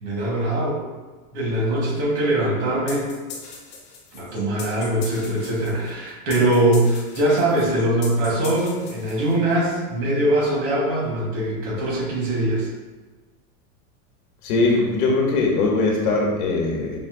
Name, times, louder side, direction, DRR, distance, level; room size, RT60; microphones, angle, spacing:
voice 1, 0.0-0.8 1.3-3.1 4.1-12.7, right 1 dB, 50° right, -4 dB, 1.4 m, -22 dB
sound 1, 2.9-9.6, left 5 dB, 35° left, 0.6 m, -40 dB
voice 2, 14.4-17.0, left 3 dB, 85° left, -1 dB, 1.0 m, -21 dB
5.4 x 2.6 x 2.5 m, 1.3 s
supercardioid pair, 170°, 45 cm